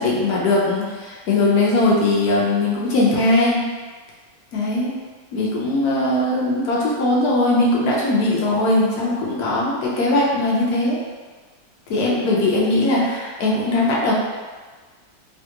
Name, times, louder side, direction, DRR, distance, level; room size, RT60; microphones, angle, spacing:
voice 1, 0.0-3.7 4.5-5.0 5.3-11.0 11.9-14.1, left 2 dB, 65° left, -5 dB, 1.2 m, -20 dB
3.4 x 2.3 x 2.9 m, 1.4 s
omnidirectional pair, 1.8 m